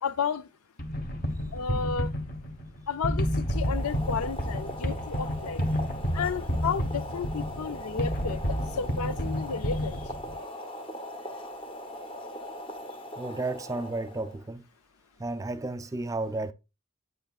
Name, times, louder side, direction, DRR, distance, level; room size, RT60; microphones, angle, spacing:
voice 1, 0.0-0.5 1.5-2.1 2.9-5.6 6.1-10.0, left 6 dB, 85° left, 0.5 m, -32 dB
sound 1, 0.8-10.3, equal, 45° left, 1.3 m, -30 dB
Boiling, 3.4-14.4, equal, 25° left, 0.9 m, -40 dB
voice 2, 13.2-14.6 15.2-16.5, right 2 dB, 15° right, 0.3 m, -32 dB
9.5 x 7.8 x 2.4 m
head